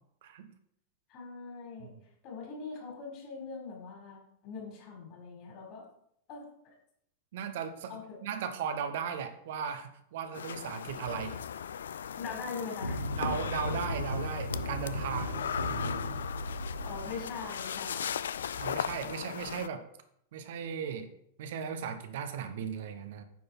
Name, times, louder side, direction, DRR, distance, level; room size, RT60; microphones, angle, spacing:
voice 1, 0.2-0.5 1.8-1.9 7.3-11.4 13.2-15.4 15.7-15.9 18.6-19.9 20.3-21.1 21.4-23.2, right 7 dB, 55° right, 8 dB, 1.0 m, -37 dB
voice 2, 1.1-1.9 2.2-5.8 6.3-6.5 7.9-8.2 12.2-13.3 16.8-18.1, left 4 dB, 40° left, 0 dB, 4.1 m, -42 dB
sound 1, 10.3-19.7, left 8 dB, 65° left, 0.4 m, -38 dB
sound 2, 12.8-18.0, left 1 dB, 85° left, 1.1 m, -36 dB
9.4 x 6.7 x 4.3 m, 0.70 s
figure-of-eight pair, 90°, 0 cm